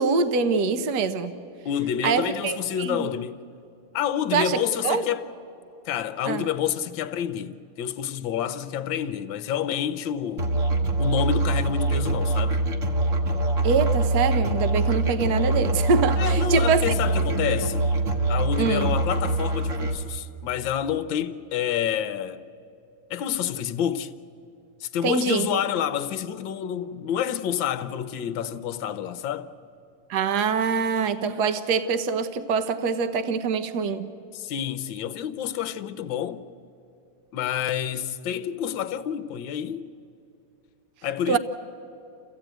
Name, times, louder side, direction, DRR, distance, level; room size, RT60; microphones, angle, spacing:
voice 1, 0.0-1.3 2.0-3.1 4.3-5.0 6.2-6.5 13.6-16.9 18.6-18.9 25.0-25.6 30.1-34.1 41.3-41.4, right 5 dB, 55° right, 1.4 m, -24 dB
voice 2, 1.6-3.4 3.9-5.3 5.9-10.5 11.0-12.6 16.2-17.9 18.3-22.4 23.1-24.1 24.8-29.5 34.3-36.4 37.3-39.8 41.0-41.4, left 9 dB, 70° left, 1.4 m, -28 dB
Musical instrument, 10.4-20.0, right 2 dB, 40° right, 1.7 m, -24 dB
28.5 x 15.0 x 9.1 m
omnidirectional pair, 2.4 m